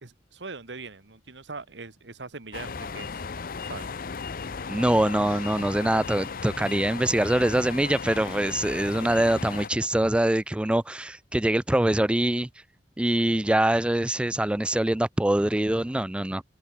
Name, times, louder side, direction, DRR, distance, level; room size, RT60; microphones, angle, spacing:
voice 1, 0.0-3.2 3.6-3.9, right 3 dB, 80° right, 1.7 m, -41 dB
sound 1, 2.5-9.7, left 5 dB, 55° left, 0.7 m, -36 dB
voice 2, 4.7-12.5 13.0-16.4, right 1 dB, 5° right, 0.3 m, -24 dB
open air
head